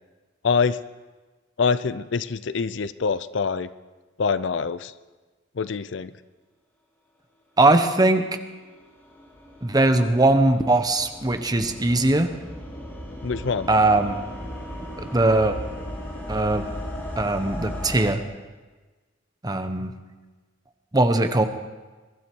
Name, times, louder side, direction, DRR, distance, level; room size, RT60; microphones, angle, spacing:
voice 1, 0.4-0.8 1.6-3.7 4.2-4.9 5.6-6.1 13.2-13.7, left 5 dB, 65° left, 15 dB, 0.5 m, -25 dB
voice 2, 7.6-8.3 9.6-12.3 13.7-14.2 15.0-15.6 16.3-16.6 17.2-18.2 19.4-19.9 20.9-21.4, right 2 dB, 20° right, 8 dB, 0.9 m, -20 dB
sound 1, 8.6-18.1, left 1 dB, 10° left, 2.3 m, -37 dB
22.0 x 12.5 x 4.6 m, 1.3 s
head